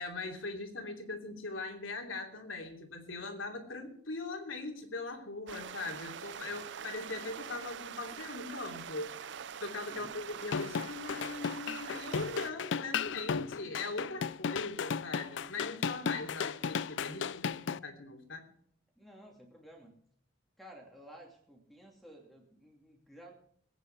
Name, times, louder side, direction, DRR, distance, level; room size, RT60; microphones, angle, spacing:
voice 1, 0.0-9.3 9.6-18.5, left 3 dB, 90° left, 3 dB, 3.0 m, -41 dB
sound 1, 5.5-12.5, right 8 dB, 65° right, 0.4 m, -44 dB
voice 2, 9.9-10.2 19.0-20.0 20.6-23.3, right 1 dB, ahead, 0 dB, 2.6 m, -54 dB
sound 2, 10.4-17.8, left 6 dB, 70° left, 0.4 m, -35 dB
21.0 x 9.1 x 4.6 m, 0.64 s
head